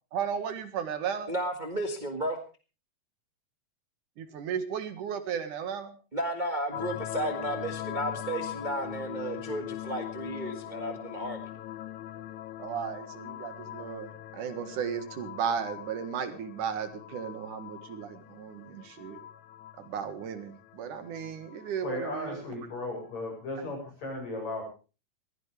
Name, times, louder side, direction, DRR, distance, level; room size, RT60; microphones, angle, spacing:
voice 1, 0.1-1.4 4.2-6.0 12.6-19.2 19.8-22.4, right 7 dB, 75° right, 10 dB, 3.2 m, -35 dB
voice 2, 1.3-2.4 6.1-11.5, right 1 dB, 20° right, 5 dB, 1.3 m, -33 dB
sound 1, 6.7-23.3, left 12 dB, 75° left, 2.3 m, -41 dB
voice 3, 21.8-24.6, left 2 dB, 60° left, 1 dB, 9.2 m, -36 dB
21.5 x 16.0 x 3.4 m, 0.34 s
omnidirectional pair, 3.6 m